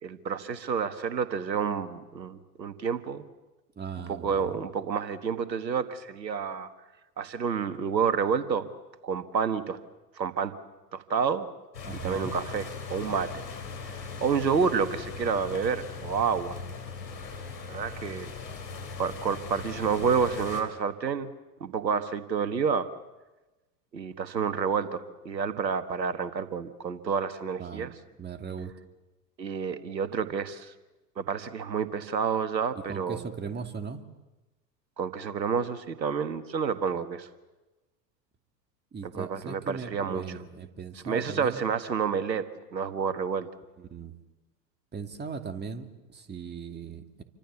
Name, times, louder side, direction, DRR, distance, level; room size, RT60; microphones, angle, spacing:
voice 1, 0.0-3.2 4.1-6.7 7.2-8.7 9.0-9.8 10.2-10.5 10.9-11.5 12.0-13.4 14.2-16.6 17.7-18.3 19.0-21.3 21.6-22.9 23.9-27.9 29.4-30.7 31.2-33.3 35.0-37.3 39.1-40.4 41.0-42.5 42.7-43.5, right 6 dB, 85° right, 11 dB, 1.7 m, -29 dB
voice 2, 3.8-4.6 11.8-12.3 27.6-27.9 28.2-28.7 32.9-34.0 38.9-41.6 43.8-44.1 44.9-47.2, right 5 dB, 20° right, 6 dB, 2.5 m, -38 dB
sound 1, 11.7-20.6, left 5 dB, 75° left, 5.0 m, -39 dB
28.5 x 24.5 x 7.1 m, 1.1 s
figure-of-eight pair, 85°, 50 cm